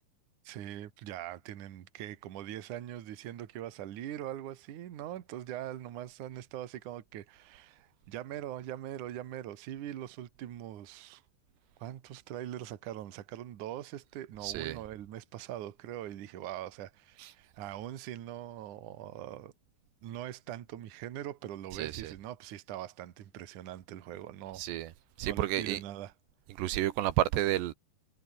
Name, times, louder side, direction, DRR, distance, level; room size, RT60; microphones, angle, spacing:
voice 1, 0.4-11.2 11.8-19.5 20.0-24.6 25.2-26.1, right 12 dB, 55° right, 2.6 m, -42 dB
voice 2, 14.4-14.8 17.2-17.3 21.8-22.1 24.6-24.9 25.2-25.8 26.6-27.7, right 14 dB, 85° right, 3.4 m, -31 dB
omnidirectional pair, 5.0 m